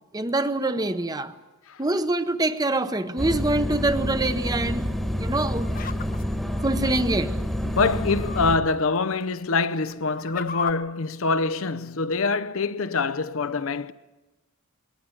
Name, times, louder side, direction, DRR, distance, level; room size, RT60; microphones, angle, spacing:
voice 1, 0.1-1.3 1.8-5.7 6.6-7.4, right 2 dB, 15° right, 0.8 m, -25 dB
sound 1, 3.2-8.6, equal, ahead, 1.3 m, -28 dB
sound 2, 5.6-6.9 7.8-8.5 9.0-9.1 9.7-10.7, left 6 dB, 40° left, 0.9 m, -35 dB
voice 2, 7.6-13.9, left 4 dB, 65° left, 0.7 m, -25 dB
21.0 x 19.0 x 9.9 m
head